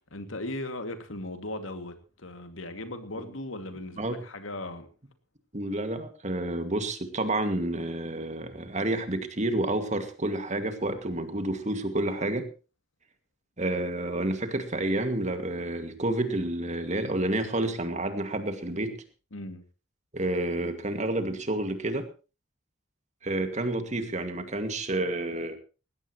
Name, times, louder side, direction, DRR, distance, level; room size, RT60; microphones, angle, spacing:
voice 1, 0.1-4.9 19.3-19.6, left 1 dB, 85° left, 2.5 m, -37 dB
voice 2, 5.5-12.5 13.6-19.0 20.1-22.1 23.2-25.6, right 1 dB, 35° right, 2.3 m, -29 dB
19.5 x 16.5 x 3.1 m
head